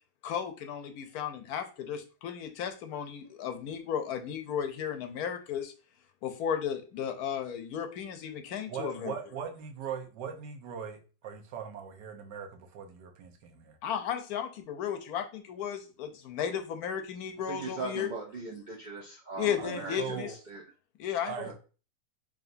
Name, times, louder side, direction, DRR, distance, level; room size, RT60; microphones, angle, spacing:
voice 1, 0.2-5.7 6.2-9.1 13.8-18.1 19.4-20.3 21.0-21.5, left 8 dB, 70° left, 7 dB, 1.0 m, -34 dB
voice 2, 8.7-13.8 19.6-20.3 21.3-21.5, right 7 dB, 90° right, 4 dB, 1.4 m, -40 dB
voice 3, 17.5-20.6 21.4-21.5, right 4 dB, 60° right, -3 dB, 0.5 m, -40 dB
4.9 x 2.9 x 2.5 m, 0.35 s
omnidirectional pair, 1.8 m